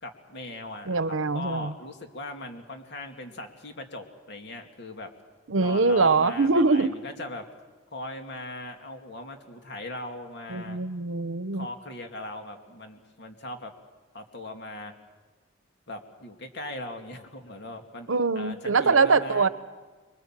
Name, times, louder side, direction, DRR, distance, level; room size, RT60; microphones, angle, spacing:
voice 1, 0.0-5.1 5.6-7.5 7.9-10.8 11.5-13.7 14.1-14.9 15.9-19.5, left 2 dB, 60° left, 4 dB, 2.5 m, -39 dB
voice 2, 0.9-1.7 5.5-6.9 10.5-11.7 18.1-19.5, right 4 dB, 85° right, 14 dB, 0.9 m, -23 dB
25.5 x 22.5 x 7.5 m, 1.4 s
head